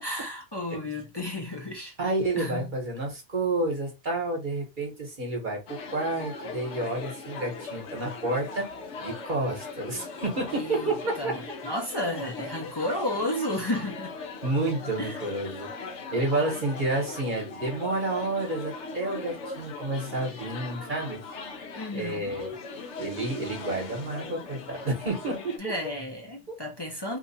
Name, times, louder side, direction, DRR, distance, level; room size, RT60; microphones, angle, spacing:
voice 1, 0.0-1.9 2.4-2.7 10.5-14.2 15.0-15.2 21.8-22.3 25.6-27.2, left 1 dB, 25° left, 0.7 m, -32 dB
voice 2, 2.0-8.7 9.0-11.3 14.4-21.2 21.9-22.6 23.0-25.7 26.5-26.6, right 2 dB, 45° right, 1.3 m, -30 dB
sound 1, 5.7-25.6, left 4 dB, 70° left, 1.0 m, -40 dB
2.9 x 2.4 x 4.1 m
omnidirectional pair, 1.2 m